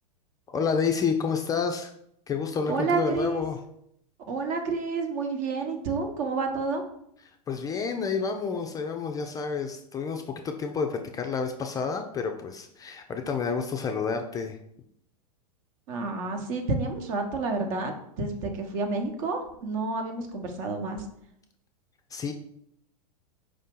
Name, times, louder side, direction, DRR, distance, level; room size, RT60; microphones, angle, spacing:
voice 1, 0.5-1.9 2.3-3.6 7.5-14.6 22.1-22.3, left 5 dB, 20° left, 4 dB, 0.3 m, -29 dB
voice 2, 2.7-3.4 4.3-6.8 15.9-21.1, right 3 dB, 55° right, 4 dB, 1.0 m, -29 dB
4.9 x 2.7 x 3.7 m, 0.72 s
hypercardioid pair, 110°, 20 cm